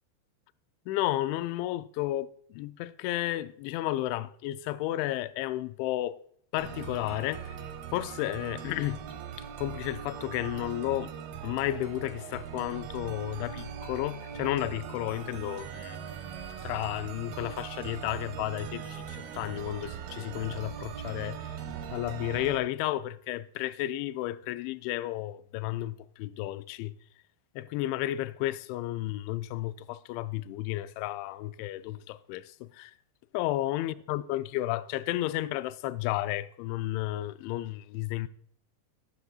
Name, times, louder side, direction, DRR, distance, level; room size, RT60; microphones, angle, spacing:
voice 1, 0.9-6.2 6.5-7.6 7.9-9.0 9.4-11.1 11.4-16.0 16.6-21.4 21.9-26.9 27.6-33.0 33.3-38.3, left 15 dB, 90° left, 2.9 m, -32 dB
sound 1, 6.6-22.6, right 8 dB, 70° right, 2.6 m, -40 dB
13.0 x 10.5 x 2.4 m
omnidirectional pair, 5.2 m